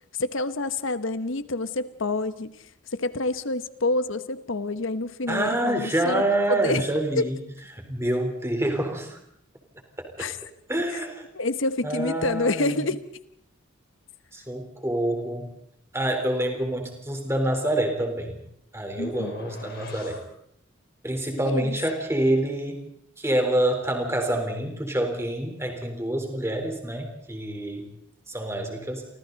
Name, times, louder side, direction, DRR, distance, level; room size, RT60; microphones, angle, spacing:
voice 1, 0.2-6.2 6.5-6.8 7.2-7.3 10.2-10.4 10.9-11.0 11.3-13.0 19.0-19.3 21.4-21.8, left 2 dB, 70° left, 12 dB, 1.1 m, -28 dB
voice 2, 5.3-7.4 7.7-9.2 10.2-10.3 10.7-11.2 11.8-12.8 14.3-15.5 15.9-18.4 18.7-20.2 21.0-22.9 23.2-27.8 28.3-29.1, right 1 dB, 15° right, 3 dB, 4.0 m, -27 dB
sound 1, 19.0-20.3, left 2 dB, 50° left, 3.9 m, -42 dB
30.0 x 25.5 x 4.1 m, 0.70 s
head